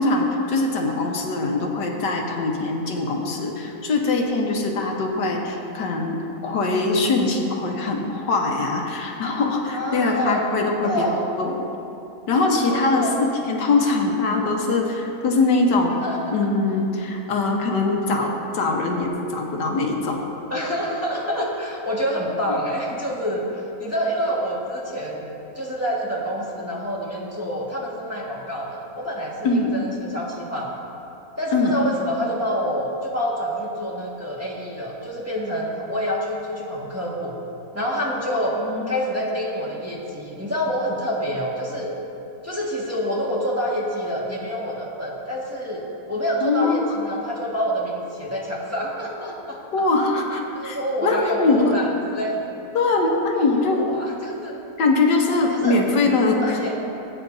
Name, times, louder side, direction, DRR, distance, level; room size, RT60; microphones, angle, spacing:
voice 1, 0.0-11.7 12.3-15.9 16.3-20.2 29.4-29.7 31.5-31.8 38.6-39.0 46.4-46.9 49.7-51.7 52.7-53.8 54.8-56.8, left 3 dB, 85° left, 1 dB, 1.7 m, -22 dB
voice 2, 9.7-10.4 10.8-11.2 12.6-13.1 16.0-16.3 20.5-25.3 25.5-30.8 31.4-37.4 37.7-38.5 38.9-41.9 42.4-49.6 50.5-52.5 53.5-54.5 55.5-55.8 56.4-56.7, equal, 10° right, -5 dB, 1.4 m, -27 dB
19.5 x 8.9 x 2.7 m, 2.8 s
omnidirectional pair, 1.8 m